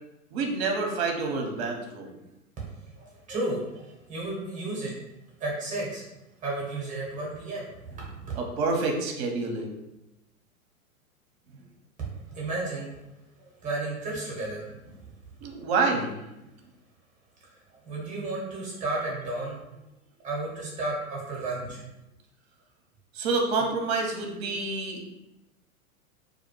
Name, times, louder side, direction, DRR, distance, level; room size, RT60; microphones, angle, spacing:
voice 1, 0.3-2.1 8.3-9.8 15.4-16.1 23.1-25.0, right 3 dB, 50° right, 2 dB, 0.7 m, -28 dB
voice 2, 3.0-4.9 5.4-6.0 6.4-8.1 12.0-13.0 13.4-14.7 17.8-19.6 20.2-21.8, right 2 dB, 20° right, -4 dB, 0.8 m, -33 dB
2.3 x 2.1 x 3.0 m, 0.91 s
hypercardioid pair, 100°, 42 cm